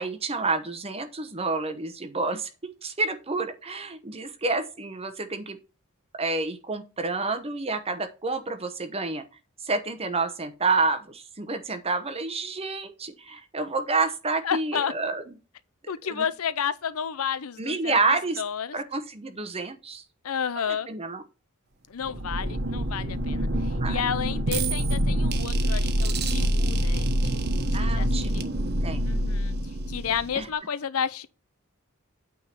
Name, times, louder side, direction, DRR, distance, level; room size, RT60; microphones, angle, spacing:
voice 1, 0.0-2.5 2.8-5.6 6.2-9.2 9.6-15.2 16.1-16.3 17.6-18.4 18.7-20.0 20.6-21.2 23.8-24.0 27.7-29.1 30.3-30.5, right 3 dB, 30° right, 0.9 m, -29 dB
voice 2, 14.4-14.9 15.9-18.0 18.4-18.8 20.2-20.9 21.9-28.4 29.0-29.6 29.9-31.3, left 7 dB, 85° left, 0.6 m, -31 dB
sound 1, 22.0-30.5, right 1 dB, 50° right, 1.3 m, -26 dB
9.0 x 3.7 x 5.8 m
head